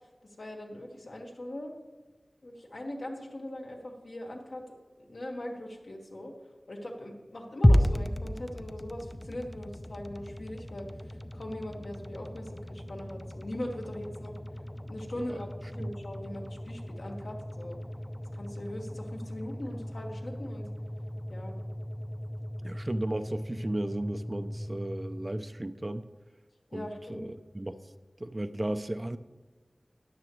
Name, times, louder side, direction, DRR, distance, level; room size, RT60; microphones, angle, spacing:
voice 1, 0.4-1.8 2.4-4.6 5.0-6.3 6.7-14.3 14.9-17.8 18.3-20.7 21.3-21.6 26.7-27.2, left 1 dB, 75° left, 0 dB, 1.7 m, -40 dB
sound 1, 7.6-25.9, equal, 15° left, 0.5 m, -34 dB
voice 2, 22.6-26.0 26.7-27.9 28.2-29.2, right 1 dB, 35° right, 10 dB, 0.5 m, -35 dB
14.0 x 9.7 x 3.2 m, 1.2 s
wide cardioid pair, 45°, 0 cm